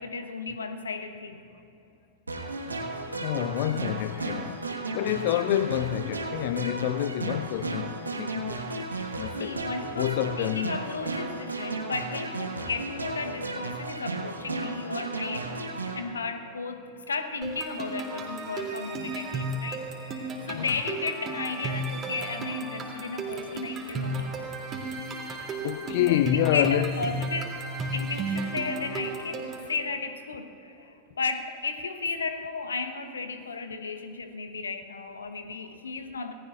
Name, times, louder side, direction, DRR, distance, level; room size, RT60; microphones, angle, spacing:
voice 1, 0.0-1.5 8.9-9.1 9.4-15.6 15.9-24.3 26.0-36.3, left 4 dB, 70° left, 1.0 m, -34 dB
sound 1, 2.3-16.0, right 3 dB, 80° right, 1.4 m, -34 dB
voice 2, 3.2-4.7 4.9-8.9 9.2-9.6 10.0-10.7 20.5-20.7 25.6-26.9, left 14 dB, 50° left, 0.4 m, -28 dB
sound 2, 17.4-29.7, right 2 dB, 25° right, 2.8 m, -34 dB
27.0 x 18.5 x 2.5 m
figure-of-eight pair, 90°, 0 cm